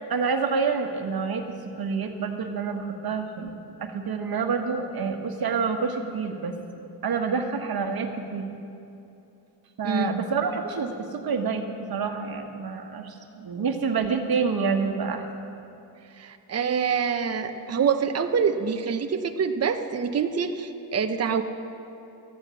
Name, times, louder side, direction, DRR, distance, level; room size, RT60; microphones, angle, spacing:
voice 1, 0.1-3.5 3.8-6.6 7.0-8.5 9.8-15.2, right 5 dB, 55° right, 5 dB, 1.5 m, -28 dB
voice 2, 16.2-21.4, right 6 dB, 35° right, 7 dB, 0.8 m, -26 dB
12.5 x 9.7 x 7.1 m, 2.8 s
cardioid pair, 70°, 43 cm